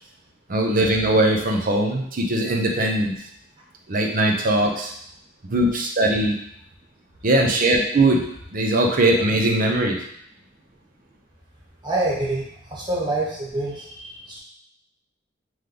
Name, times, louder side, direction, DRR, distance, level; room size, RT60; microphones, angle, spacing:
voice 1, 0.5-3.2 3.9-4.9 5.5-6.4 7.2-8.2 8.5-10.0, right 1 dB, 45° right, 1 dB, 0.7 m, -20 dB
voice 2, 11.8-14.4, right 2 dB, 25° right, -4 dB, 1.0 m, -26 dB
3.4 x 3.1 x 3.8 m, 0.69 s
head